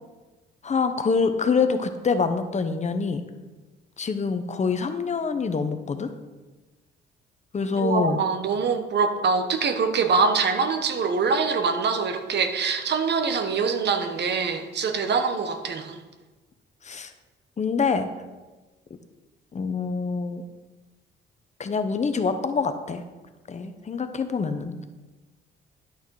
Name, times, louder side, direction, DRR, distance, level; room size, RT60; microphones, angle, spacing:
voice 1, 0.6-3.2 4.0-6.1 7.5-8.2 16.8-17.1 17.6-18.1 19.5-20.4 21.6-23.0 23.5-24.8, left 5 dB, 35° left, 9 dB, 0.9 m, -25 dB
voice 2, 7.8-16.0, right 5 dB, 60° right, 8 dB, 1.1 m, -24 dB
11.5 x 6.3 x 4.8 m, 1.2 s
cardioid pair, 90°, 20 cm